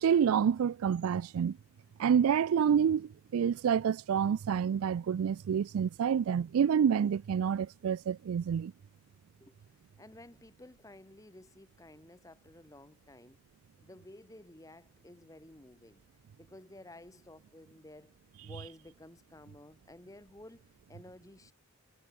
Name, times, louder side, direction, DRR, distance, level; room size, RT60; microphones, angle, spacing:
voice 1, 0.0-1.6 2.0-8.7, right 7 dB, 85° right, 0.3 m, -28 dB
voice 2, 9.4-13.4 13.8-16.0 16.4-21.5, left 1 dB, 15° left, 0.8 m, -53 dB
head